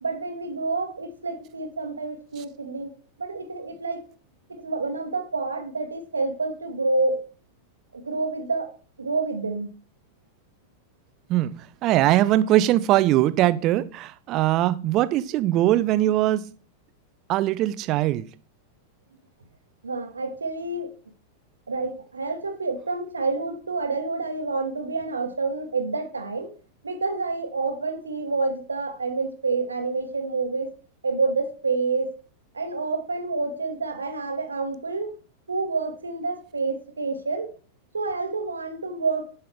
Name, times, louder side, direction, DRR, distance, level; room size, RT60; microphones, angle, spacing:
voice 1, 0.0-2.9 3.2-4.0 4.5-7.2 7.9-8.7 9.0-9.7 19.8-20.9 21.7-26.5 26.8-30.7 31.0-32.1 32.5-35.1 35.5-37.5 37.9-39.2, right 3 dB, 75° right, 5 dB, 1.2 m, -28 dB
voice 2, 11.8-16.5 17.3-18.3, right 14 dB, 35° right, 14 dB, 0.5 m, -21 dB
7.5 x 5.6 x 3.5 m, 0.39 s
figure-of-eight pair, 90°, 0 cm